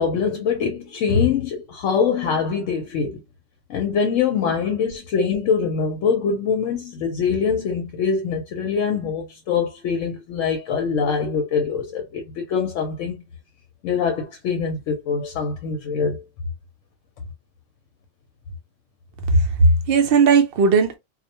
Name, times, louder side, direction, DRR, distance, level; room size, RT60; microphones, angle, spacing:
voice 1, 0.0-3.2 3.7-13.2 13.8-16.2, left 6 dB, 80° left, 0.9 m, -23 dB
voice 2, 19.3-21.0, right 4 dB, 55° right, 0.7 m, -16 dB
2.4 x 2.1 x 2.8 m
omnidirectional pair, 1.3 m